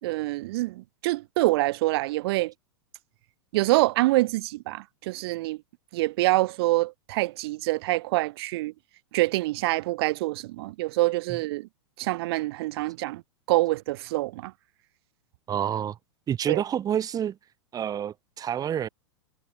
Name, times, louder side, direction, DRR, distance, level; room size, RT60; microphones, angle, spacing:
voice 1, 0.0-2.5 3.5-5.6 5.9-8.7 9.1-11.7 12.0-13.2 13.5-14.5 16.5-16.6, right 19 dB, 60° right, 2.0 m, -26 dB
voice 2, 15.5-16.0 16.3-17.4 17.7-18.9, right 9 dB, 25° right, 2.5 m, -28 dB
hypercardioid pair, 115°, 15 cm